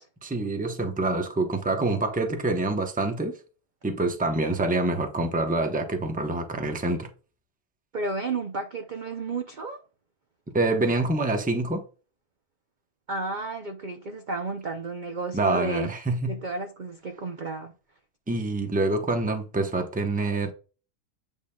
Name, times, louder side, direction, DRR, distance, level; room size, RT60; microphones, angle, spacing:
voice 1, 0.2-3.4 3.8-7.1 10.5-11.8 15.3-16.4 18.3-20.5, right 2 dB, 10° right, 0.6 m, -26 dB
voice 2, 7.9-9.8 13.1-15.9 16.3-17.7, right 3 dB, 55° right, 0.5 m, -32 dB
8.4 x 5.4 x 2.3 m
omnidirectional pair, 1.6 m